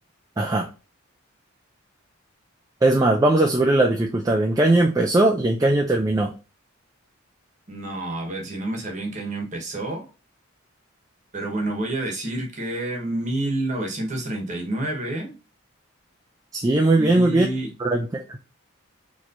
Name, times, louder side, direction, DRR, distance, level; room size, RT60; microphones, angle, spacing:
voice 1, 0.4-0.7 2.8-6.3 16.5-17.5 17.8-18.4, right 2 dB, 15° right, 1 dB, 0.3 m, -19 dB
voice 2, 7.7-10.1 11.3-15.3 17.0-17.7, right 1 dB, 35° right, 1 dB, 1.1 m, -29 dB
4.2 x 3.0 x 2.5 m, 0.31 s
head